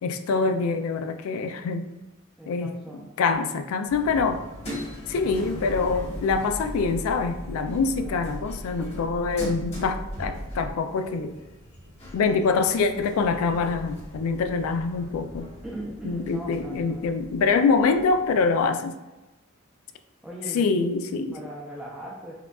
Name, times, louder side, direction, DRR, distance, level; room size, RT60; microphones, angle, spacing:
voice 1, 0.0-1.8 2.5-2.7 3.2-4.5 5.1-11.4 12.1-15.5 16.0-19.0 20.5-21.4, left 4 dB, 85° left, 8 dB, 0.3 m, -25 dB
voice 2, 2.4-3.1 8.0-8.2 15.6-17.1 20.2-20.7 21.1-22.3, right 1 dB, 5° right, -6 dB, 0.5 m, -39 dB
sound 1, 3.9-18.7, left 1 dB, 30° left, 1.0 m, -41 dB
sound 2, 5.5-10.7, equal, 35° right, 0.9 m, -38 dB
4.8 x 2.3 x 2.3 m, 1.1 s
head